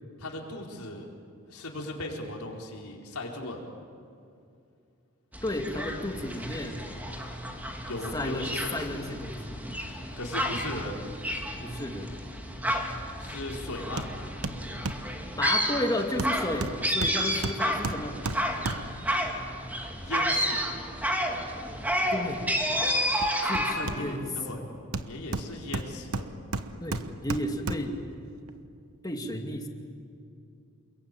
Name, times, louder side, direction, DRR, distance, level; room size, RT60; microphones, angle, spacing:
voice 1, 0.2-1.1 1.5-3.6 7.9-8.9 10.2-11.0 13.2-14.1 20.0-20.7 23.7-24.7 25.0-26.3, left 1 dB, 85° left, 0 dB, 4.4 m, -37 dB
sound 1, 5.3-23.7, equal, 10° right, 2.6 m, -31 dB
voice 2, 5.4-6.9 7.8-9.6 11.6-12.1 15.4-18.2 22.1-22.5 23.4-24.6 26.8-28.0 29.0-29.7, left 1 dB, 20° left, 3 dB, 2.4 m, -33 dB
Hammer, 14.0-14.2 14.4-15.1 16.2-19.1 22.9-24.4 24.9-28.0 28.5-28.6, right 2 dB, 75° right, 1.2 m, -34 dB
28.5 x 22.5 x 9.2 m, 2.5 s
head